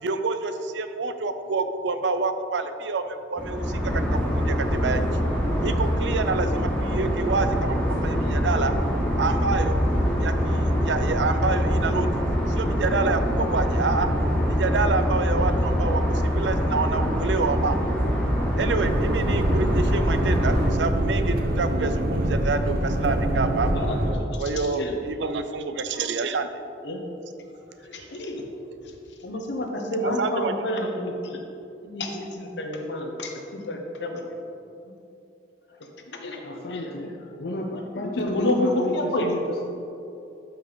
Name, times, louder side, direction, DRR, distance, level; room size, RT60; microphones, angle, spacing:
voice 1, 0.0-5.1 5.6-8.7 9.2-9.8 10.2-12.1 12.6-14.1 14.5-16.0 16.3-17.8 18.6-23.9 24.4-26.5 28.0-28.1 30.0-30.5, right 4 dB, 85° right, 9 dB, 0.6 m, -27 dB
sound 1, 3.4-20.7, equal, 5° left, 1.4 m, -24 dB
sound 2, 18.8-24.1, right 1 dB, 60° right, 0.8 m, -25 dB
voice 2, 23.8-24.9 25.9-26.1 26.8-27.0 27.8-28.5 29.2-31.4 31.8-34.4 34.8-34.9 36.2-36.9 37.4-39.3, left 1 dB, 80° left, 2 dB, 1.0 m, -29 dB
voice 3, 36.4-39.7, left 1 dB, 60° left, 1 dB, 0.6 m, -32 dB
12.5 x 5.2 x 4.0 m, 2.7 s
head